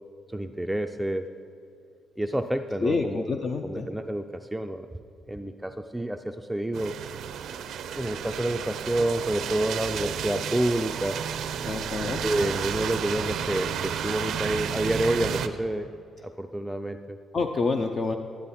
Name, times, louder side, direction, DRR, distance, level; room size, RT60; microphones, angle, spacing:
voice 1, 0.3-1.3 2.2-3.2 3.6-4.9 5.3-6.9 7.9-11.2 12.2-15.9 16.2-17.2, right 1 dB, 5° right, 5 dB, 0.4 m, -28 dB
voice 2, 2.8-3.9 11.7-12.2 17.3-18.1, left 4 dB, 45° left, 4 dB, 0.6 m, -27 dB
sound 1, 6.7-15.5, right 8 dB, 75° right, 0.5 m, -32 dB
12.0 x 10.5 x 4.2 m, 2.4 s
cardioid pair, 90°, 0 cm